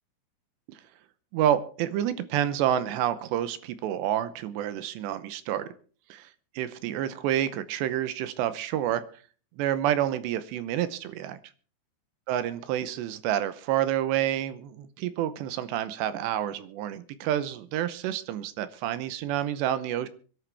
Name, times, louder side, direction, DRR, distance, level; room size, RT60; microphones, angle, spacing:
voice 1, 1.3-5.7 6.1-6.3 6.5-9.0 9.6-11.4 12.3-20.1, right 11 dB, 75° right, 13 dB, 2.8 m, -28 dB
23.5 x 11.0 x 3.4 m, 0.40 s
omnidirectional pair, 5.4 m